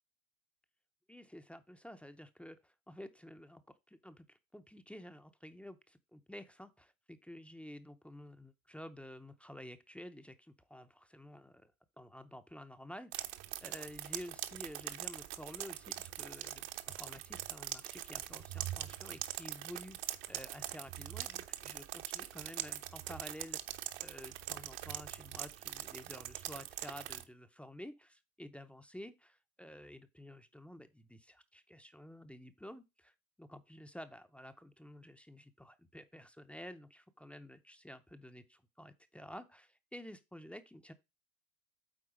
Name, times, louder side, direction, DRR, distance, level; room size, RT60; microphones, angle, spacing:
voice 1, 1.1-3.6 3.9-11.7 12.0-13.4 13.6-16.7 16.9-23.6 24.0-33.1 33.4-40.9, equal, 5° left, 0.5 m, -51 dB
sound 1, 13.1-27.2, right 14 dB, 60° right, 1.0 m, -43 dB
8.8 x 3.9 x 5.0 m
supercardioid pair, 110°, 42 cm